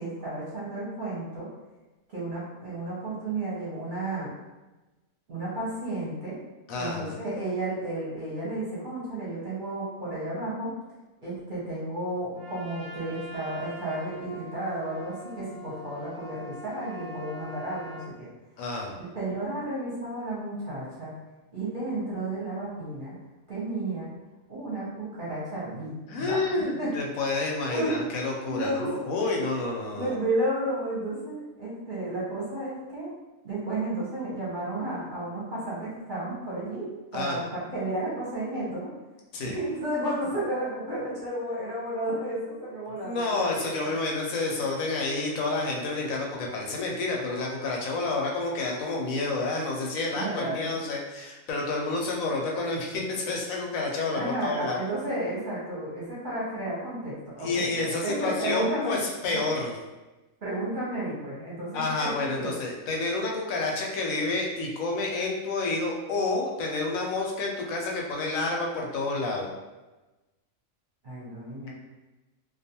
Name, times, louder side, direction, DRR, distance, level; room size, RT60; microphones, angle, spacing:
voice 1, 0.0-1.5 2.1-4.3 5.3-6.4 6.7-10.7 11.2-18.3 18.9-21.1 21.5-23.1 23.5-24.1 24.5-26.4 26.8-26.9 27.7-27.9 28.5-29.1 30.0-33.1 33.4-38.9 39.4-43.7 50.2-50.8 54.1-59.4 60.4-62.6 71.0-71.7, right 1 dB, 45° right, -8 dB, 0.8 m, -32 dB
voice 2, 6.7-7.1 18.6-18.9 26.1-30.1 37.1-37.4 39.3-39.5 42.9-54.8 57.4-59.8 61.7-69.5, left 3 dB, 80° left, -1 dB, 1.0 m, -29 dB
Trumpet, 12.3-18.1, equal, 85° right, 1.0 m, -43 dB
2.4 x 2.3 x 2.8 m, 1.1 s
omnidirectional pair, 1.4 m